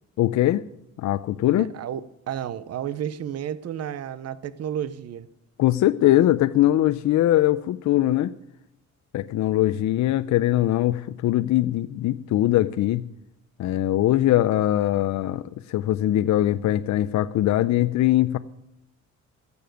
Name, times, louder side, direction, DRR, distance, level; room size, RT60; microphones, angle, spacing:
voice 1, 0.2-0.6 1.0-1.7 5.6-8.3 9.1-13.0 13.6-18.4, left 14 dB, 70° left, 0.6 m, -21 dB
voice 2, 1.5-5.3, right 9 dB, 55° right, 0.8 m, -32 dB
14.0 x 6.9 x 9.2 m
cardioid pair, 90°, 30 cm